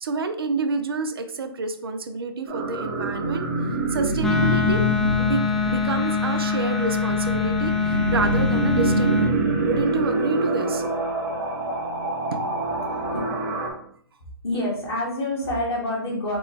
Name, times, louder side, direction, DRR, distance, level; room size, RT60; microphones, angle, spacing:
voice 1, 0.0-3.5 3.9-4.9 5.2-10.8 12.3-12.4, right 4 dB, 75° right, 8 dB, 0.5 m, -28 dB
sound 1, 2.5-13.7, right 1 dB, 45° right, 1.0 m, -26 dB
Wind instrument woodwind instrument, 4.2-9.4, left 6 dB, ahead, 0.3 m, -24 dB
voice 2, 14.4-16.4, left 1 dB, 85° left, -7 dB, 1.4 m, -27 dB
3.7 x 2.2 x 3.5 m, 0.62 s
hypercardioid pair, 130°, 13 cm